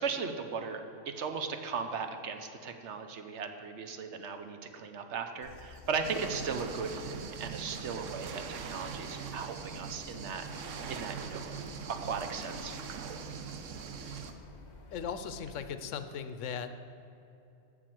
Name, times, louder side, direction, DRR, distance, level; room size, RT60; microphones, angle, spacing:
voice 1, 0.0-10.4 10.9-11.5 11.9-12.8, right 5 dB, 70° right, 6 dB, 1.0 m, -37 dB
sound 1, 5.4-15.6, left 2 dB, 60° left, 1.3 m, -52 dB
sound 2, 6.0-14.3, right 6 dB, 90° right, 1.1 m, -41 dB
voice 2, 14.9-16.7, left 7 dB, 80° left, 10 dB, 1.0 m, -38 dB
7.5 x 6.6 x 7.7 m, 2.8 s
omnidirectional pair, 1.3 m